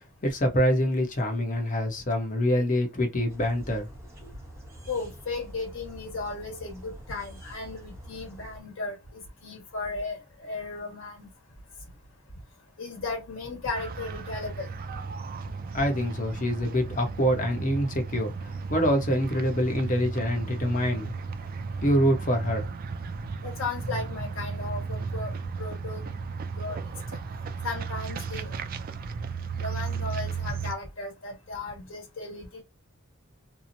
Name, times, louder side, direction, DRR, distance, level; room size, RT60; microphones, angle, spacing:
voice 1, 0.2-3.9 4.2-4.3 15.7-21.1 21.8-22.7, equal, 40° left, 0.8 m, -25 dB
sound 1, 3.3-8.6, equal, 15° right, 0.9 m, -46 dB
voice 2, 4.9-10.2 10.4-11.3 12.8-14.7 23.4-26.1 26.5-26.8 27.1-27.2 27.6-28.5 29.6-32.6, left 3 dB, 70° left, 1.4 m, -35 dB
sound 2, 13.7-30.7, right 5 dB, 45° right, 0.3 m, -35 dB
2.8 x 2.0 x 2.6 m
head